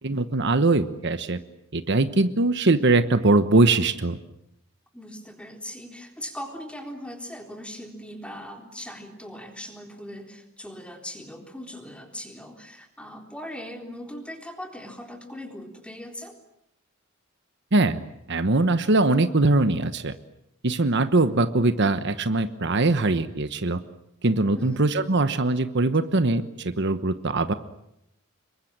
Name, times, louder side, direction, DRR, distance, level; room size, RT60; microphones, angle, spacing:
voice 1, 0.0-1.4 1.7-4.2 17.7-18.0 18.3-20.2 20.6-23.8 24.2-27.5, right 2 dB, 55° right, 10 dB, 1.2 m, -22 dB
voice 2, 4.9-16.4 24.5-24.9, equal, 5° left, 4 dB, 3.8 m, -39 dB
27.0 x 23.0 x 8.9 m, 0.80 s
head